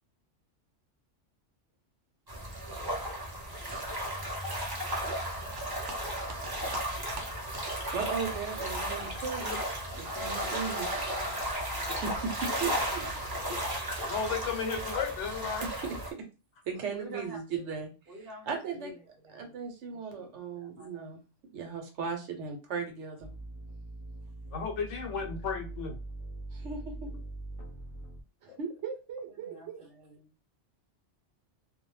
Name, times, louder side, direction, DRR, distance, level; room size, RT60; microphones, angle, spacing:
sound 1, 2.3-16.1, equal, 25° right, 0.5 m, -34 dB
voice 1, 7.9-9.6 9.9-10.9 11.8-12.3 12.6-13.2 15.6-15.9 16.7-17.9 18.5-18.9 19.3-21.2 21.5-23.3 26.5-27.1 28.4-29.8, right 6 dB, 75° right, 4 dB, 1.0 m, -37 dB
voice 2, 10.0-12.2 12.5-13.6 16.7-17.7 18.1-19.6 19.8-21.2 29.3-30.3, equal, 60° right, 1 dB, 0.9 m, -48 dB
voice 3, 14.1-15.7 24.5-26.0 28.5-28.6, left 5 dB, 80° left, 5 dB, 1.0 m, -34 dB
sound 2, 23.2-28.2, right 2 dB, 35° left, 0.6 m, -42 dB
2.4 x 2.1 x 3.0 m, 0.30 s
omnidirectional pair, 1.2 m